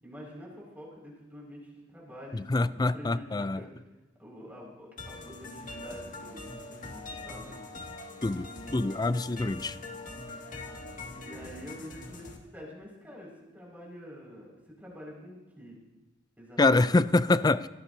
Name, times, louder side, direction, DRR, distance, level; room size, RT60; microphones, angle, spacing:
voice 1, 0.0-3.7 4.2-7.6 8.6-9.3 11.1-14.5 14.8-15.8 16.4-17.0, equal, 10° right, -3 dB, 5.6 m, -47 dB
voice 2, 2.3-3.6 8.2-9.8 16.6-17.7, left 2 dB, 20° left, 15 dB, 0.4 m, -25 dB
sound 1, 5.0-12.4, left 2 dB, 45° left, 2.1 m, -42 dB
24.5 x 18.0 x 2.8 m, 1.1 s
head